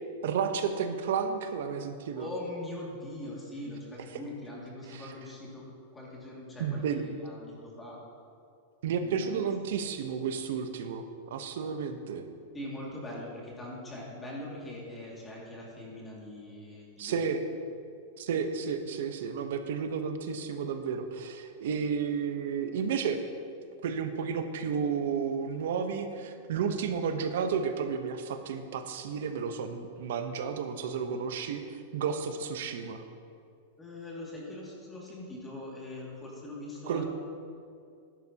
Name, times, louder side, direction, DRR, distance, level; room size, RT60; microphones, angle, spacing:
voice 1, 0.2-2.3 4.9-5.1 6.6-7.0 8.8-12.2 17.0-17.4 18.2-23.2 23.8-33.0 36.9-37.0, right 6 dB, 70° right, 7 dB, 0.9 m, -32 dB
voice 2, 2.1-5.6 5.9-8.0 9.0-9.5 12.5-17.3 33.8-37.0, left 1 dB, 10° left, -4 dB, 2.3 m, -42 dB
13.0 x 11.0 x 2.9 m, 2.4 s
supercardioid pair, 150°, 0 cm